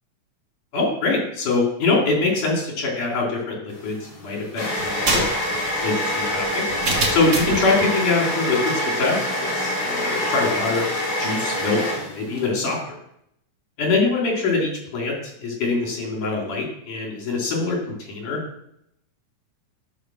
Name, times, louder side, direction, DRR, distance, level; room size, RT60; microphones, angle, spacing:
voice 1, 0.7-5.2 5.8-6.6 7.1-8.6 9.0-9.3 9.5-10.9 11.2-12.8 13.8-15.1 15.4-17.8 18.1-18.4, left 3 dB, 70° left, -1 dB, 4.9 m, -23 dB
sound 1, 3.7-12.5, left 1 dB, 30° left, 3.4 m, -26 dB
sound 2, 4.8-7.7, right 2 dB, 35° right, 2.2 m, -26 dB
13.0 x 6.9 x 6.4 m, 0.76 s
omnidirectional pair, 3.7 m